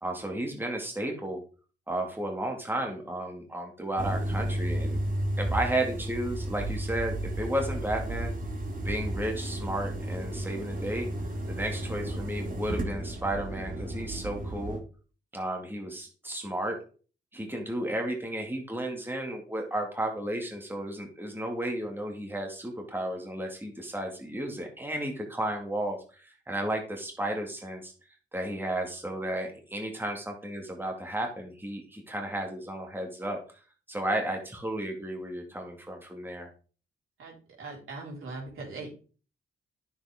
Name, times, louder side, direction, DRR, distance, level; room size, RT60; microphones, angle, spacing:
voice 1, 0.0-1.4 1.9-5.0 5.4-8.3 8.8-11.1 11.5-14.8 15.3-16.8 17.3-27.9 28.3-33.4 33.9-36.5, right 1 dB, 10° right, 2 dB, 2.2 m, -33 dB
sound 1, 4.0-14.8, right 1 dB, 40° right, 2.5 m, -33 dB
voice 2, 37.2-38.9, right 3 dB, 80° right, -2 dB, 4.4 m, -40 dB
9.6 x 7.1 x 3.6 m, 0.38 s
cardioid pair, 75°, 21 cm